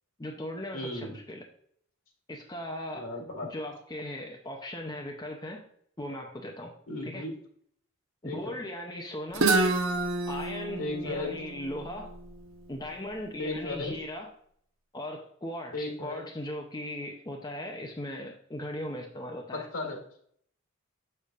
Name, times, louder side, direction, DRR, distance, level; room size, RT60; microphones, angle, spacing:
voice 1, 0.2-1.4 2.3-3.1 3.5-5.7 6.0-6.7 7.0-7.2 8.2-9.5 10.3-12.1 12.7-14.3 14.9-19.7, left 1 dB, 20° left, 1 dB, 0.6 m, -38 dB
voice 2, 0.7-1.1 2.9-3.5 6.9-7.3 8.2-8.4 10.8-11.4 13.4-14.0 15.7-16.2 19.5-20.0, left 2 dB, 75° left, 3 dB, 1.8 m, -35 dB
Guitar, 9.3-13.1, right 3 dB, 65° right, 0.8 m, -29 dB
6.8 x 6.4 x 2.5 m, 0.64 s
head